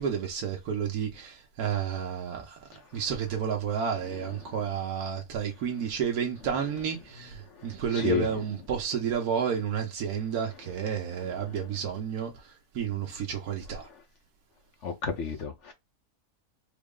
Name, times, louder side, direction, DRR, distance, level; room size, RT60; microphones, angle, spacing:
voice 1, 0.0-2.6 2.9-12.3 12.7-13.9, right 7 dB, 85° right, 1.3 m, -31 dB
voice 2, 7.9-8.3 11.5-11.6 14.8-15.7, left 7 dB, 60° left, 1.0 m, -30 dB
4.0 x 2.0 x 3.5 m
omnidirectional pair, 1.5 m